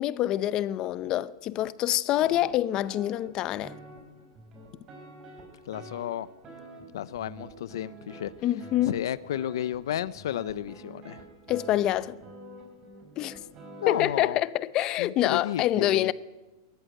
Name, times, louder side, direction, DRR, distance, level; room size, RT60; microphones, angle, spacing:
voice 1, 0.0-3.8 8.4-8.9 11.5-12.2 13.2-13.4 13.9-16.1, left 13 dB, 30° left, 0.6 m, -26 dB
sound 1, 2.2-14.2, right 2 dB, 25° right, 4.9 m, -48 dB
voice 2, 5.7-6.3 6.9-8.3 8.9-11.2 13.8-14.4 15.0-16.1, left 11 dB, 75° left, 0.6 m, -32 dB
23.0 x 14.0 x 9.0 m
supercardioid pair, 160°, 2 cm